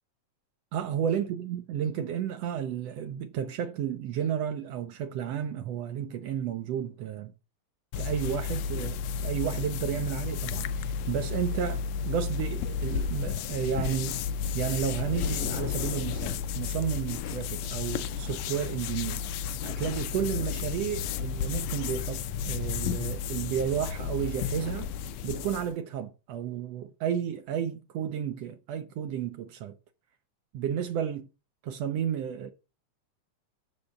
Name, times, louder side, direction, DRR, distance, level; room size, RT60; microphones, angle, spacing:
voice 1, 0.7-7.3 8.0-14.2 14.5-19.2 19.6-24.9 25.2-29.8 30.5-31.3 31.6-32.5, right 9 dB, 75° right, 1.6 m, -32 dB
sound 1, 7.9-25.7, left 6 dB, 80° left, 1.7 m, -32 dB
6.9 x 5.3 x 6.4 m
omnidirectional pair, 3.4 m